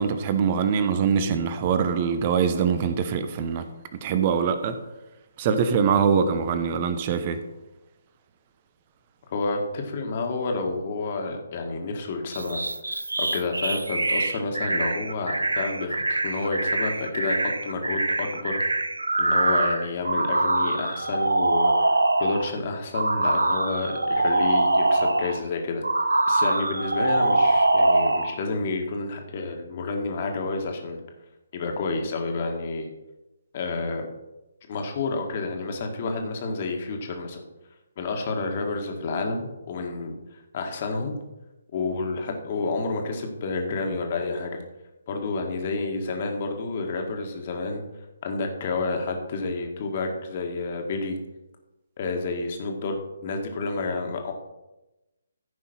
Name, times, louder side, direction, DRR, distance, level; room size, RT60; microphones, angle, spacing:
voice 1, 0.0-3.7 3.9-4.8 5.4-7.4, right 6 dB, 30° right, 1.0 m, -23 dB
voice 2, 9.3-12.6 13.2-18.6 19.2-25.8 26.3-31.0 31.5-32.9 33.5-34.1 34.7-37.4 38.0-40.2 40.5-41.1 41.7-44.6 45.1-47.8 48.2-51.2 52.0-53.0 53.2-54.3, left 3 dB, 35° left, 1.7 m, -29 dB
sound 1, 12.3-22.5 22.9-25.4 25.8-28.4, right 2 dB, 70° right, 0.7 m, -24 dB
14.5 x 5.6 x 4.4 m
figure-of-eight pair, 140°, 0 cm